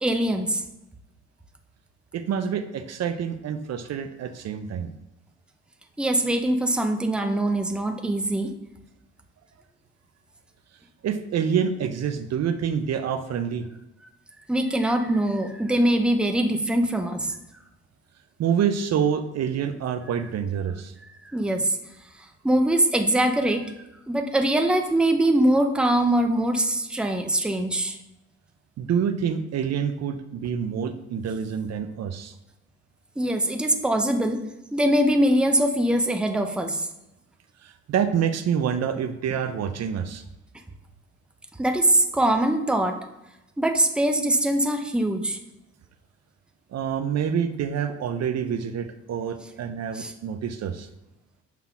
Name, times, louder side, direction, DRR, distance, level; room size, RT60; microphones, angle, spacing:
voice 1, 0.0-0.6 6.0-8.5 14.5-17.4 21.2-21.8 22.4-23.7 24.1-28.0 33.2-34.4 34.7-36.9 41.6-43.0 43.6-45.4 49.9-50.1, right 1 dB, 5° right, 5 dB, 0.7 m, -22 dB
voice 2, 2.1-4.9 11.0-13.7 18.4-20.9 28.8-32.3 37.6-40.2 46.7-50.9, right 7 dB, 60° right, 9 dB, 0.6 m, -27 dB
5.9 x 3.6 x 5.8 m, 0.92 s
cardioid pair, 90°, 30 cm